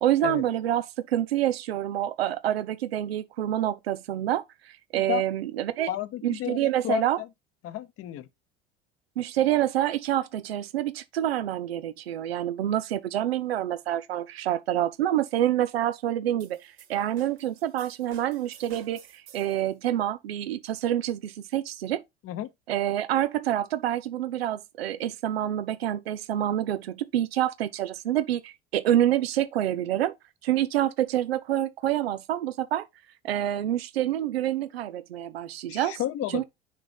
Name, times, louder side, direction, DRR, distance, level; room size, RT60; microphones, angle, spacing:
voice 1, 0.0-5.9 6.2-7.2 9.2-22.0 22.7-30.1 30.4-32.9 33.2-36.0 36.3-36.4, right 12 dB, 75° right, 0.7 m, -27 dB
voice 2, 5.9-7.3 7.6-8.3 22.2-22.5 35.7-36.4, left 13 dB, 45° left, 1.0 m, -32 dB
sound 1, 16.4-19.7, right 9 dB, 60° right, 3.0 m, -52 dB
9.9 x 3.8 x 3.4 m
figure-of-eight pair, 60°, 31 cm